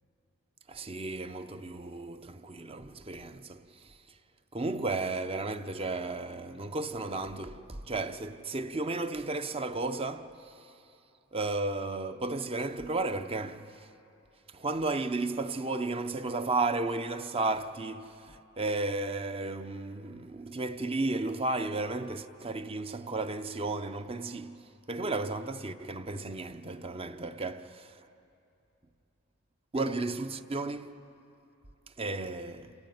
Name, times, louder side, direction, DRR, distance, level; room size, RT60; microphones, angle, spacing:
voice 1, 0.7-4.0 4.5-10.6 11.3-13.8 14.5-28.0 29.7-31.0 32.0-32.7, right 3 dB, 25° right, 0.6 m, -34 dB
28.0 x 16.0 x 9.3 m
head